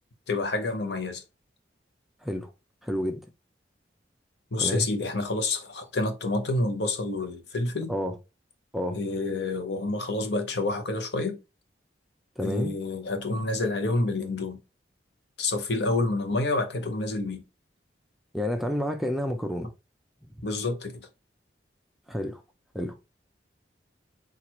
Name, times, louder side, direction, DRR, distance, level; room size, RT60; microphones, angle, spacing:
voice 1, 0.3-1.2 4.5-7.9 8.9-11.4 12.4-14.6 15.4-17.4 20.4-21.0, left 2 dB, 65° left, 0.8 m, -28 dB
voice 2, 2.2-2.5 2.8-3.2 4.6-4.9 7.9-8.2 8.7-9.0 12.4-12.7 18.3-19.7 22.1-22.4 22.7-23.0, equal, ahead, 0.4 m, -29 dB
4.5 x 2.5 x 4.1 m
head